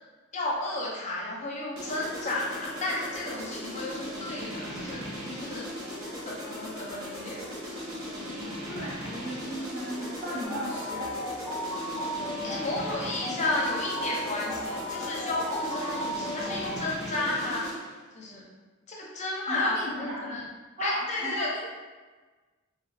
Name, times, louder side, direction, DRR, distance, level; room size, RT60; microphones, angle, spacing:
voice 1, 0.3-5.7 6.2-7.6 12.4-17.7 18.1-18.4 18.9-20.4 20.8-21.5, left 2 dB, 35° left, -3 dB, 0.6 m, -33 dB
sound 1, 1.8-17.9, equal, 65° right, 1.1 m, -38 dB
voice 2, 8.3-11.1 19.4-20.4 20.8-21.7, equal, 25° right, -17 dB, 1.5 m, -35 dB
sound 2, 10.4-16.8, equal, 5° left, 1.2 m, -35 dB
3.0 x 3.0 x 2.5 m, 1.3 s
head